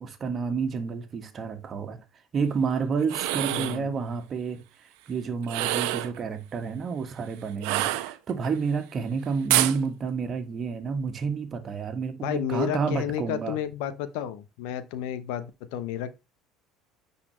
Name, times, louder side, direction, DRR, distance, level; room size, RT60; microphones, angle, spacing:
voice 1, 0.0-2.0 2.3-4.6 5.1-13.6, right 5 dB, 40° right, 1.6 m, -30 dB
sound 1, 3.0-3.8 5.4-6.2 7.6-8.5 9.5-9.8, right 15 dB, 80° right, 0.7 m, -26 dB
voice 2, 3.5-3.9 12.2-16.1, left 10 dB, 75° left, 0.8 m, -31 dB
9.8 x 4.2 x 3.1 m
supercardioid pair, 85°, 0 cm